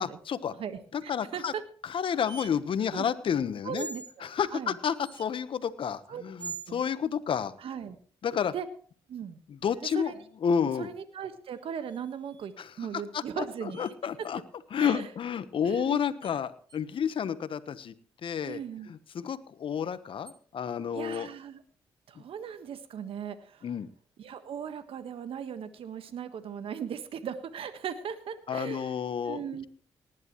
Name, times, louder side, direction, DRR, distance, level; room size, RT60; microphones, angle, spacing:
voice 1, 0.0-0.5 0.9-1.5 1.8-3.9 4.2-7.5 8.2-8.5 9.5-10.1 10.4-10.9 12.6-12.7 13.1-14.4 14.7-17.9 18.2-18.6 18.9-21.3 23.6-23.9 28.5-29.7, left 7 dB, 60° left, 13 dB, 1.1 m, -30 dB
voice 2, 0.6-1.6 2.9-3.0 3.6-4.8 6.1-6.2 6.7-6.8 7.6-8.0 8.5-8.7 9.1-9.4 9.9-10.2 10.8-13.8 14.8-15.1 15.6-16.0 18.4-18.9 20.9-21.6 22.1-23.7 24.2-28.9 29.2-29.7, right 8 dB, 65° right, 10 dB, 1.4 m, -38 dB
sound 1, 2.3-2.5 3.7-4.2 4.9-5.3 6.4-6.8 9.7-10.2 11.9-12.5 13.7-13.9 14.2-14.3 16.2-16.3 16.7-16.8 18.4-18.6 20.3-20.4 21.1-21.2, right 5 dB, 45° right, 1.0 m, -44 dB
19.0 x 11.0 x 3.1 m, 0.43 s
supercardioid pair, 55°, 10 cm